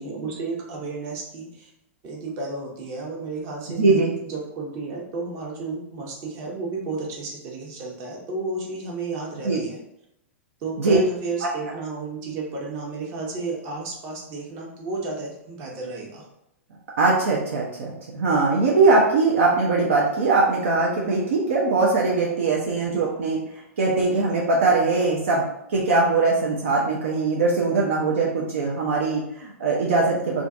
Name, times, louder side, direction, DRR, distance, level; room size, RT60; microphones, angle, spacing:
voice 1, 0.0-1.7 2.0-9.8 10.6-16.3, right 3 dB, 40° right, -1 dB, 0.8 m, -32 dB
voice 2, 3.8-4.1 9.4-9.6 10.8-11.0 11.4-11.5 17.0-23.4 23.8-25.4 25.7-30.4, right 3 dB, 70° right, -3 dB, 0.5 m, -21 dB
2.5 x 2.3 x 2.5 m, 0.81 s
figure-of-eight pair, 100°, 7 cm